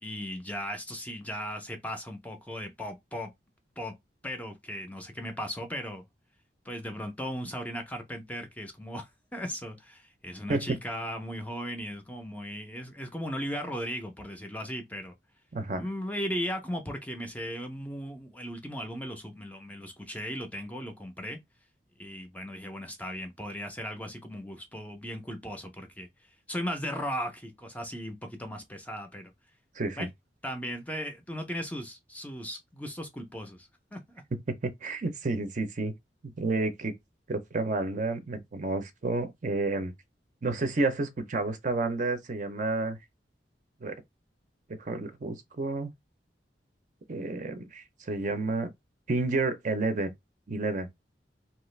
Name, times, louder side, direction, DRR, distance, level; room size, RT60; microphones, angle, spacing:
voice 1, 0.0-3.3 3.8-3.9 4.2-6.0 6.6-15.1 15.8-21.4 22.0-26.1 26.5-29.3 30.0-30.1 30.4-34.2, equal, 10° left, 0.5 m, -37 dB
voice 2, 29.8-30.1 34.3-35.9 36.4-36.9 37.3-39.9 40.4-43.0 43.8-43.9 44.8-45.9 47.1-48.7 49.1-50.1 50.5-50.9, right 3 dB, 45° right, 0.5 m, -30 dB
2.8 x 2.4 x 3.1 m
head